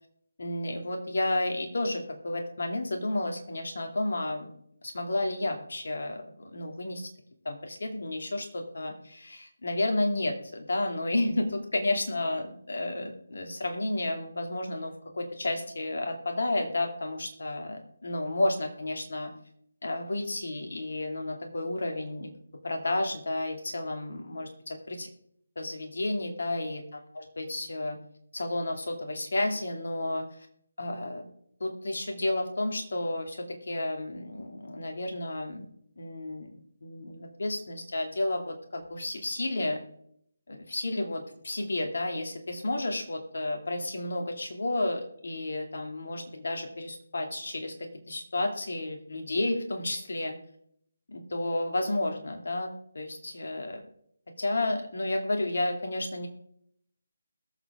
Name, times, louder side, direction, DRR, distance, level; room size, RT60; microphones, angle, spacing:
voice 1, 0.4-4.5 4.8-7.1 7.4-19.3 19.8-22.3 22.6-25.1 25.6-28.0 28.3-30.5 30.8-31.2 31.6-35.7 36.0-36.5 36.8-39.8 40.5-47.7 48.1-50.4 51.1-53.8 54.4-56.3, left 2 dB, 65° left, 3 dB, 2.4 m, -31 dB
21.0 x 7.0 x 3.6 m, 0.70 s
figure-of-eight pair, 150°, 0 cm